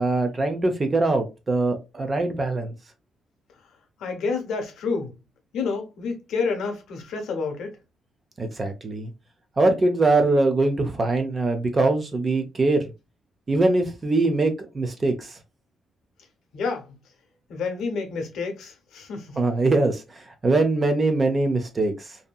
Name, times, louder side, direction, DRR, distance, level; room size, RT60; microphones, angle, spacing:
voice 1, 0.0-2.7 8.4-9.1 9.6-12.9 13.5-15.4 19.4-22.2, right 2 dB, 20° right, 0.4 m, -22 dB
voice 2, 4.0-5.1 5.5-7.8 16.5-16.9 17.5-19.4, left 4 dB, 75° left, 0.8 m, -29 dB
2.7 x 2.6 x 2.2 m
cardioid pair, 170°, 0 cm